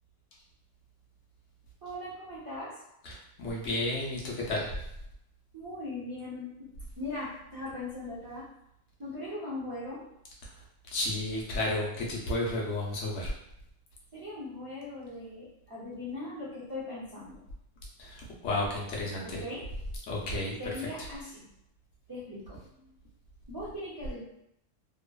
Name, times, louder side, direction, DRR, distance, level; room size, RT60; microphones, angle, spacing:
voice 1, 1.8-2.7 5.5-6.5 7.0-8.5 9.0-10.0 14.1-17.4 19.2-19.6 20.6-21.5 22.1-22.9 23.5-24.2, left 2 dB, 25° right, -10 dB, 0.5 m, -39 dB
voice 2, 3.0-4.7 10.9-13.3 18.0-19.4 20.1-20.5, left 1 dB, 80° left, -3 dB, 1.0 m, -32 dB
2.9 x 2.0 x 2.3 m, 0.78 s
omnidirectional pair, 1.3 m